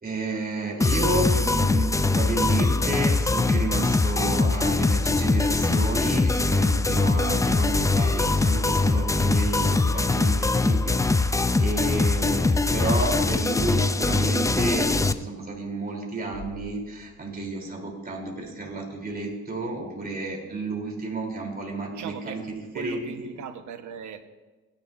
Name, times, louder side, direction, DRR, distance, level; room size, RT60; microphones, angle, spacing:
voice 1, 0.0-23.3, right 2 dB, 30° right, -1 dB, 3.4 m, -31 dB
sound 1, 0.8-15.1, left 3 dB, 10° left, 0.4 m, -22 dB
sound 2, 15.2-18.1, left 2 dB, 10° right, 3.5 m, -44 dB
voice 2, 21.9-22.4 22.7-24.2, right 6 dB, 70° right, 8 dB, 1.2 m, -38 dB
16.5 x 10.5 x 2.6 m, 1.2 s
cardioid pair, 90°, 30 cm